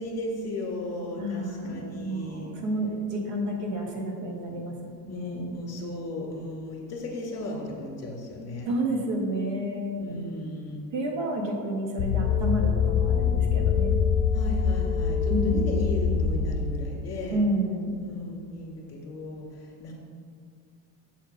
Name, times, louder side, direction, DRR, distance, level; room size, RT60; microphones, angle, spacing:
voice 1, 0.0-2.5 3.3-3.7 5.1-8.7 10.0-10.9 14.3-17.4 18.0-19.9, left 1 dB, 35° left, -1 dB, 2.2 m, -36 dB
voice 2, 1.2-4.8 5.0-5.5 8.6-10.2 10.9-14.0 15.3-15.7 17.3-18.0, right 1 dB, 75° right, 1 dB, 1.8 m, -30 dB
sound 1, 12.0-17.0, left 6 dB, 60° left, 0.8 m, -24 dB
7.6 x 4.3 x 6.6 m, 2.2 s
cardioid pair, 125°, 46 cm